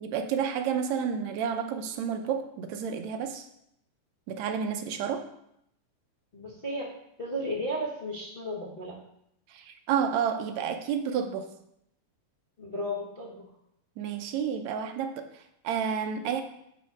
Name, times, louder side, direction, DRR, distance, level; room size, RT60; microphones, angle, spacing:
voice 1, 0.0-3.5 4.3-5.2 9.5-11.5 14.0-16.4, right 7 dB, 75° right, 6 dB, 1.8 m, -30 dB
voice 2, 6.3-6.9 7.2-9.0 12.6-13.5, equal, 45° left, -6 dB, 0.7 m, -34 dB
10.0 x 4.1 x 5.2 m, 0.76 s
omnidirectional pair, 3.7 m